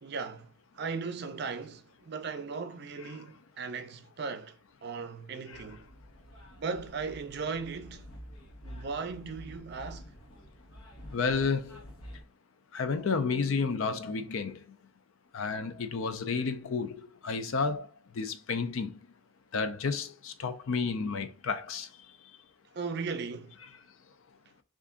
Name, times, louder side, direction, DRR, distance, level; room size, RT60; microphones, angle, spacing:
voice 1, 0.0-4.6 4.8-5.9 6.6-8.1 8.6-10.1 22.7-23.6, right 4 dB, 50° right, 0.5 m, -37 dB
sound 1, 5.5-12.3, equal, 85° left, 1.0 m, -49 dB
voice 2, 11.1-11.8 12.7-14.6 15.3-17.9 18.2-19.0 19.5-21.9, left 4 dB, 70° left, 0.5 m, -31 dB
3.4 x 2.5 x 3.7 m
head